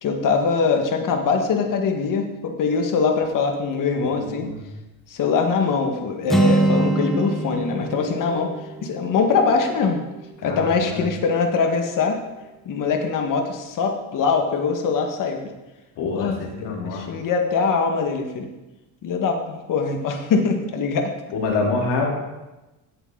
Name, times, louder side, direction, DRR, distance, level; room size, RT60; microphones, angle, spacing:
voice 1, 0.0-4.5 5.1-8.5 8.8-10.0 10.4-12.2 12.7-15.4 16.1-18.5 19.0-21.1, left 5 dB, 50° left, 4 dB, 1.8 m, -22 dB
voice 2, 4.0-4.6 10.4-11.1 16.0-17.1 21.3-22.1, left 4 dB, 75° left, -2 dB, 3.6 m, -26 dB
Acoustic guitar, 6.3-10.2, right 2 dB, ahead, 1.0 m, -24 dB
16.5 x 8.0 x 4.0 m, 1.1 s
cardioid pair, 150°, 42 cm